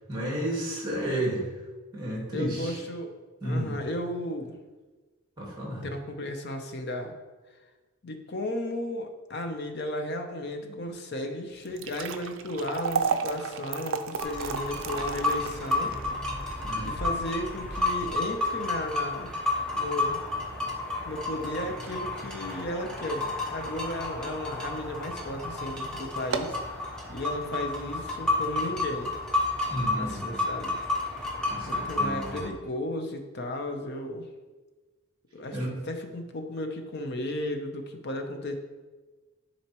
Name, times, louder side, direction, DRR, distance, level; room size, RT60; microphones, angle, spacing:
voice 1, 0.1-1.4 1.9-2.7 3.4-3.7 5.4-5.8 10.7-10.8 16.6-16.9 29.7-30.4 31.5-32.4 35.5-35.7, right 1 dB, 20° right, -3 dB, 2.0 m, -32 dB
voice 2, 2.3-3.1 3.4-4.6 5.8-7.1 8.0-15.9 16.8-19.4 19.7-20.2 21.0-26.6 27.1-29.1 30.0-30.8 31.7-34.3 35.3-35.6 35.8-38.5, left 1 dB, 50° left, 5 dB, 0.7 m, -34 dB
sound 1, 11.6-23.9 24.3-24.4 25.1-25.3 25.6-25.7 26.1-26.7, right 5 dB, 65° right, 0.4 m, -35 dB
sound 2, 14.2-32.5, left 2 dB, 5° left, 0.8 m, -31 dB
10.5 x 4.2 x 3.0 m, 1.3 s
head